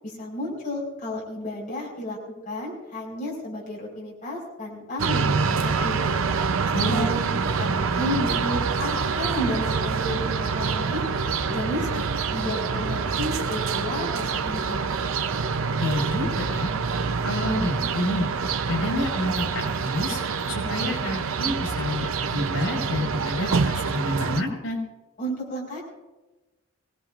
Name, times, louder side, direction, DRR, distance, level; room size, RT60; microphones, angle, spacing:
voice 1, 0.0-2.2 2.4-6.0 6.8-7.1 7.6-11.1 11.5-14.9 25.2-25.8, left 1 dB, 40° left, -3 dB, 4.6 m, -32 dB
sound 1, 5.0-24.4, right 5 dB, 90° right, 0.7 m, -26 dB
voice 2, 6.7-7.3 15.8-16.7 17.2-18.3 18.7-20.2 20.5-24.8, left 1 dB, 80° left, 2 dB, 5.0 m, -28 dB
24.0 x 19.0 x 2.5 m, 1.1 s
head